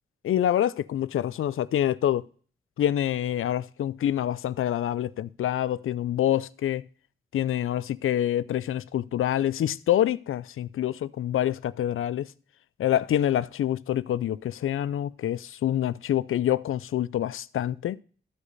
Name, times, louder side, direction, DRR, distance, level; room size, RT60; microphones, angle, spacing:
voice 1, 0.2-2.2 2.8-6.8 7.3-12.3 12.8-18.0, left 11 dB, 85° left, 0.4 m, -26 dB
13.0 x 5.0 x 4.0 m
cardioid pair, 40°, 21 cm